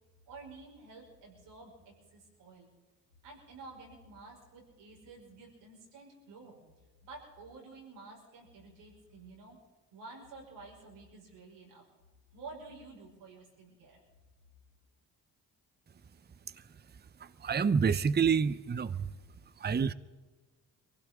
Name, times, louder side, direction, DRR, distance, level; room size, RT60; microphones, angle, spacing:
voice 1, 0.3-2.7 3.2-6.6 7.0-9.6 9.9-11.8 12.3-14.0, right 3 dB, 85° right, -2 dB, 5.3 m, -51 dB
voice 2, 17.2-19.1 19.6-19.9, right 6 dB, 25° right, 16 dB, 0.7 m, -28 dB
23.5 x 16.0 x 3.7 m, 1.3 s
supercardioid pair, 60°, 42 cm